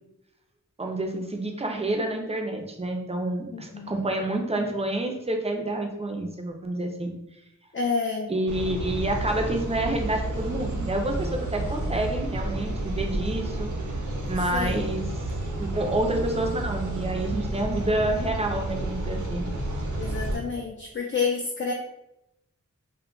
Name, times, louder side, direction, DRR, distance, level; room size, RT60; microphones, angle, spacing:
voice 1, 0.8-7.2 8.3-13.7 14.3-15.1 15.6-19.5, right 1 dB, 20° right, 3 dB, 0.5 m, -28 dB
voice 2, 3.5-3.9 7.7-8.3 14.5-14.9 20.0-21.7, left 5 dB, 40° left, -1 dB, 0.4 m, -29 dB
sound 1, 8.5-20.4, right 1 dB, 65° right, 0.6 m, -31 dB
2.2 x 2.1 x 3.7 m, 0.86 s
wide cardioid pair, 50°, 32 cm